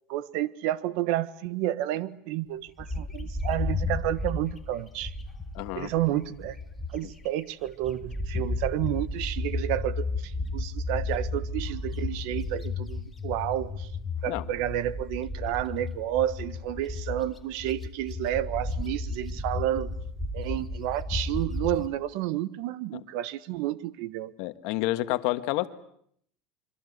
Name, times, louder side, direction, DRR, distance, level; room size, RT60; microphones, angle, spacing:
voice 1, 0.1-5.1 5.7-6.6 6.9-13.9 14.2-19.9 20.3-24.3, right 13 dB, 65° right, 15 dB, 1.3 m, -30 dB
Bird, 2.8-7.3 7.7-21.9, left 2 dB, 10° left, 2.0 m, -33 dB
voice 2, 5.5-5.9 14.3-14.4 22.9-23.0 24.4-25.7, left 17 dB, 65° left, 11 dB, 1.5 m, -29 dB
27.0 x 24.0 x 8.1 m, 0.69 s
cardioid pair, 150°, 0 cm